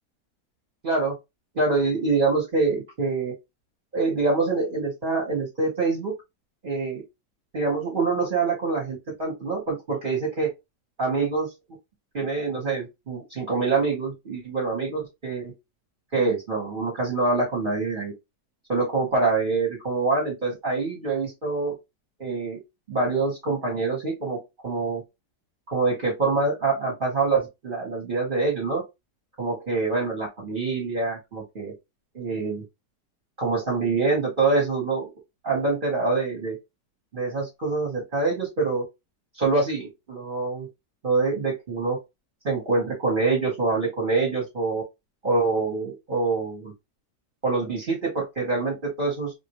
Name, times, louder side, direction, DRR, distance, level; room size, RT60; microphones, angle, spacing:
voice 1, 0.8-1.1 1.5-3.3 3.9-6.1 6.6-7.0 7.5-10.5 11.0-11.5 12.1-15.5 16.1-18.1 18.7-21.8 22.2-22.6 22.9-25.0 25.7-28.8 29.4-31.7 32.1-32.6 33.4-35.0 35.4-36.6 37.1-38.8 39.3-40.7 41.0-42.0 42.4-44.8 45.2-46.7 47.4-49.3, right 3 dB, 35° right, -4 dB, 1.1 m, -25 dB
2.9 x 2.6 x 2.9 m, 0.22 s
omnidirectional pair, 1.9 m